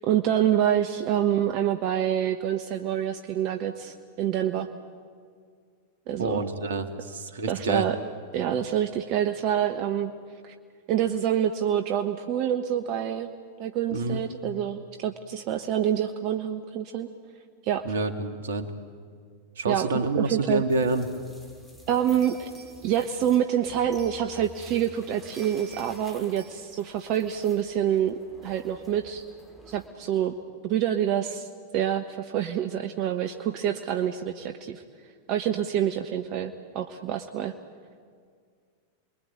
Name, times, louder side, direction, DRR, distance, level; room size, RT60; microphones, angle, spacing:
voice 1, 0.0-4.7 6.1-6.4 7.5-8.0 8.3-10.1 10.4-10.5 10.9-13.3 13.6-17.1 17.6-17.9 19.7-19.9 20.2-20.6 21.9-22.5 22.8-29.2 29.7-30.3 30.6-31.5 31.7-34.8 35.3-37.6, right 10 dB, 45° right, 7 dB, 1.2 m, -27 dB
voice 2, 6.2-7.9 13.9-14.2 17.8-18.7 19.6-21.1, right 3 dB, 70° right, 8 dB, 2.2 m, -27 dB
sound 1, 20.7-29.9, equal, 10° left, 6.5 m, -51 dB
sound 2, 21.6-21.7 22.2-24.7 25.1-26.0 26.4-26.6, right 6 dB, 25° right, 3.9 m, -51 dB
29.5 x 22.0 x 9.0 m, 2.1 s
figure-of-eight pair, 90°, 0 cm